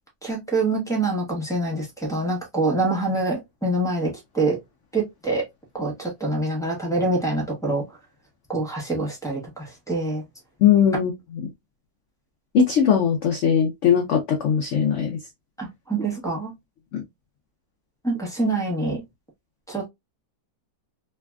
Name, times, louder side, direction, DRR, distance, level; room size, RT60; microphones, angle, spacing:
voice 1, 0.2-4.6 4.9-5.5 5.7-7.8 8.5-10.2 15.6-16.5 18.0-19.0 19.7-19.9, right 2 dB, 5° left, 0.5 m, -25 dB
voice 2, 10.6-11.1 12.5-15.1 16.9-17.0, left 8 dB, 85° left, 0.6 m, -19 dB
3.2 x 2.2 x 2.2 m
omnidirectional pair, 1.8 m